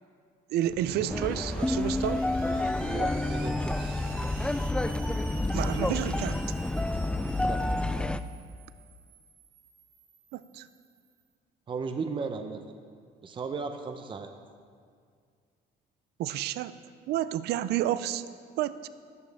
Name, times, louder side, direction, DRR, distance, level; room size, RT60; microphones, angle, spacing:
voice 1, 0.5-2.2 5.5-6.4 10.3-10.7 16.2-16.8 17.1-18.2 18.6-18.9, right 12 dB, 75° right, 14 dB, 0.5 m, -30 dB
Screech, 0.7-11.1, right 4 dB, 60° right, 1.4 m, -47 dB
sound 1, 1.1-8.2, left 2 dB, 5° left, 0.3 m, -29 dB
voice 2, 2.8-4.0 7.4-7.6 11.7-12.6 13.2-14.3, right 4 dB, 30° right, 6 dB, 0.7 m, -35 dB
13.5 x 10.5 x 3.4 m, 2.1 s
cardioid pair, 110°, 17 cm